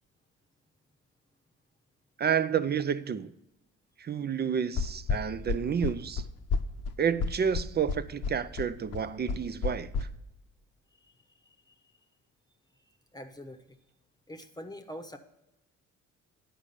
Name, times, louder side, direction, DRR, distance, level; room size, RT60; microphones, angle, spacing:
voice 1, 2.2-3.3 4.0-6.2 7.0-9.9, right 7 dB, 35° right, 0.5 m, -30 dB
sound 1, 4.8-10.0, left 5 dB, 55° left, 0.8 m, -31 dB
voice 2, 11.4-11.7 13.1-13.8 14.3-15.2, equal, 15° left, 0.9 m, -44 dB
10.0 x 5.0 x 6.7 m
cardioid pair, 90°, 30 cm